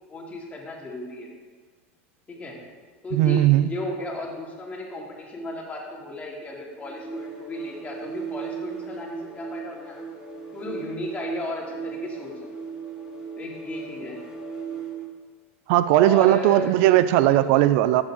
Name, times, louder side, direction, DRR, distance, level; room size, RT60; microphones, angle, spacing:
voice 1, 0.1-1.3 2.3-2.6 3.0-10.0 10.5-12.5 13.4-14.2 15.9-16.7 17.3-17.4, left 2 dB, 20° left, -3 dB, 3.1 m, -35 dB
voice 2, 3.1-3.7 15.7-18.0, right 14 dB, 65° right, 14 dB, 0.4 m, -18 dB
sound 1, 6.8-15.2, right 6 dB, 10° right, 2.8 m, -37 dB
13.0 x 8.8 x 4.0 m, 1.5 s
hypercardioid pair, 105°, 7 cm